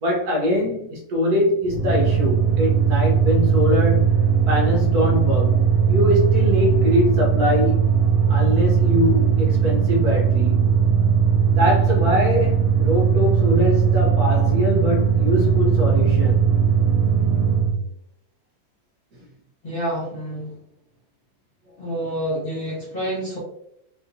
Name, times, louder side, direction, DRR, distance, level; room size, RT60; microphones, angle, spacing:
voice 1, 0.0-4.2 4.5-7.8 8.3-10.7 11.5-16.5, left 1 dB, 65° right, 1.1 m, -23 dB
sound 1, 1.7-17.8, right 6 dB, 90° right, 1.4 m, -19 dB
voice 2, 19.6-20.5 21.8-23.4, equal, 40° left, 0.9 m, -28 dB
3.6 x 2.6 x 2.5 m
omnidirectional pair, 2.0 m